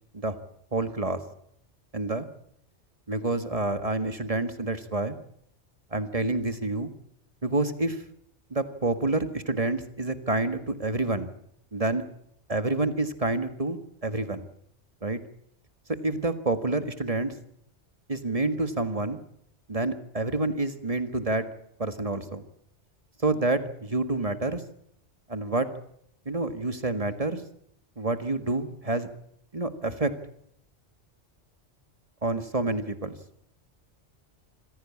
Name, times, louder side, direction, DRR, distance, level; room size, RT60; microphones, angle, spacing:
voice 1, 0.7-1.2 1.9-2.3 3.1-5.2 5.9-6.9 7.4-8.0 8.5-11.3 11.7-12.0 12.5-14.4 15.0-15.2 16.0-17.3 18.1-19.2 19.7-21.5 21.8-22.4 23.2-24.6 25.3-25.7 26.3-27.4 28.0-29.1 29.5-30.2 32.2-33.2, right 2 dB, 30° right, 10 dB, 1.7 m, -28 dB
26.0 x 16.0 x 8.6 m, 0.73 s
omnidirectional pair, 1.2 m